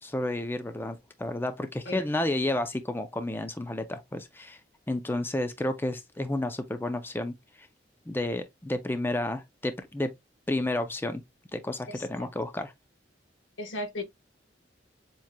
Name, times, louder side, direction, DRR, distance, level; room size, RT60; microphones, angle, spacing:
voice 1, 0.0-4.6 4.9-7.7 8.1-10.1 10.5-11.2 11.5-12.7, left 1 dB, 10° left, 0.4 m, -31 dB
voice 2, 11.9-12.3 13.6-14.0, left 1 dB, 80° left, 1.3 m, -36 dB
7.2 x 3.0 x 2.2 m
head